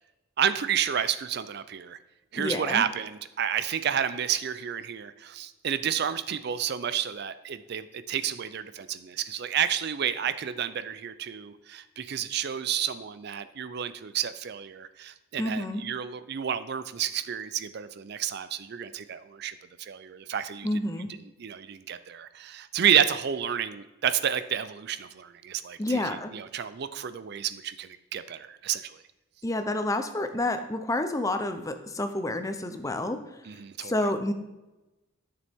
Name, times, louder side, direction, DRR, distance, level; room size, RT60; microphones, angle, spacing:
voice 1, 0.4-2.0 2.3-20.7 21.4-26.0 26.3-29.0 33.5-33.9, right 9 dB, 55° right, 13 dB, 0.4 m, -30 dB
voice 2, 2.4-2.9 15.4-15.8 20.6-21.1 25.8-26.3 29.4-33.2 33.8-34.3, left 1 dB, 15° left, 8 dB, 0.6 m, -29 dB
12.0 x 6.8 x 3.6 m, 1.0 s
head